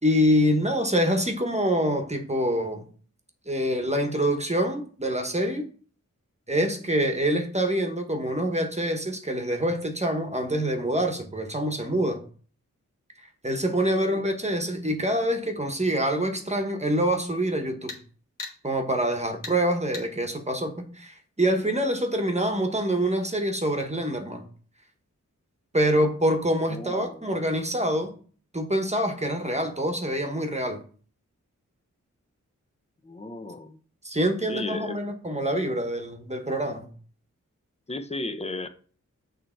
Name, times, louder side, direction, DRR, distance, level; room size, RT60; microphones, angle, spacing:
voice 1, 0.0-2.8 3.5-5.6 6.5-12.2 13.2-18.0 18.6-24.5 25.7-28.1 28.5-30.8 34.0-36.9, equal, 20° right, 1.1 m, -26 dB
voice 2, 13.9-14.2 26.7-27.2 33.0-33.8 34.5-35.0 37.9-38.7, left 2 dB, 20° left, 0.6 m, -35 dB
sound 1, 17.9-18.0 18.4-18.6 19.4-19.6 19.9-20.1, left 4 dB, 90° left, 1.5 m, -37 dB
6.5 x 3.3 x 4.5 m
wide cardioid pair, 55°, 31 cm